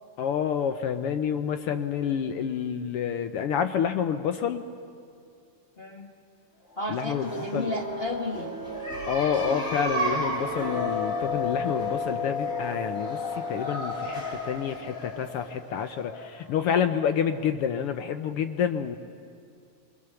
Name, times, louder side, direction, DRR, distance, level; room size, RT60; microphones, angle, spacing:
voice 1, 0.2-4.7 6.9-7.7 9.1-19.0, left 8 dB, 75° left, 9 dB, 1.3 m, -28 dB
voice 2, 5.8-6.1 6.8-8.5, left 1 dB, 45° left, 2 dB, 0.7 m, -33 dB
sound 1, 7.0-16.5, left 2 dB, 25° left, 3.4 m, -32 dB
26.5 x 24.0 x 7.0 m, 2.4 s
omnidirectional pair, 3.4 m